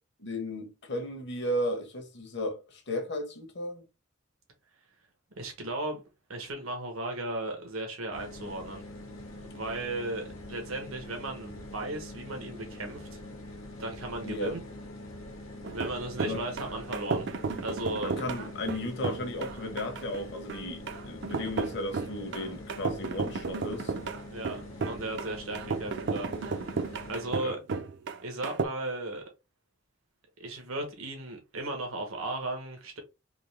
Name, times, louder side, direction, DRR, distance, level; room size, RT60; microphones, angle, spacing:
voice 1, 0.2-3.8 14.2-14.5 16.3-16.4 18.0-23.9 27.4-27.6, left 1 dB, 55° left, 1.1 m, -35 dB
voice 2, 5.4-6.0 6.3-8.8 9.4-13.2 13.8-14.6 15.7-17.3 17.6-18.2 24.3-27.6 28.2-29.2 30.4-33.0, right 2 dB, 90° right, 1.2 m, -36 dB
sound 1, 8.1-27.4, left 1 dB, 75° left, 1.3 m, -44 dB
sound 2, 15.6-28.6, right 4 dB, 55° right, 0.5 m, -34 dB
3.9 x 2.8 x 3.3 m
head